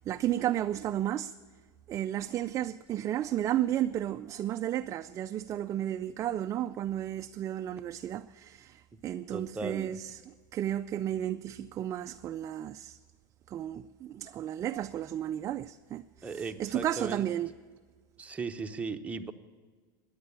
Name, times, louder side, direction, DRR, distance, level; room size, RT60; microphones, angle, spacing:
voice 1, 0.0-1.3 1.9-13.0 13.5-17.5, right 11 dB, 30° right, 0.4 m, -33 dB
voice 2, 9.3-10.0 16.2-17.3 18.2-19.3, right 4 dB, 10° right, 0.8 m, -37 dB
14.5 x 10.5 x 8.3 m
supercardioid pair, 125°, 11 cm